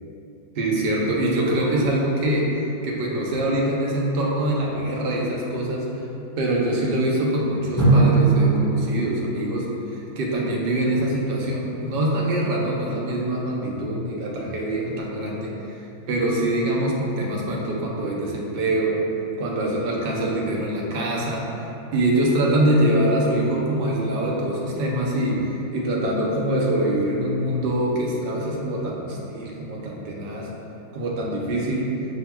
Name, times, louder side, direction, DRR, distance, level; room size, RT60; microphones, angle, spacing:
voice 1, 0.5-2.5 2.8-5.9 6.4-15.8 16.1-19.0 19.4-21.7 21.9-30.5 30.9-31.9, right 1 dB, 60° right, -3 dB, 0.6 m, -24 dB
Drum, 7.8-10.4, right 3 dB, 20° left, 0.7 m, -20 dB
5.7 x 2.7 x 2.2 m, 2.9 s
omnidirectional pair, 1.5 m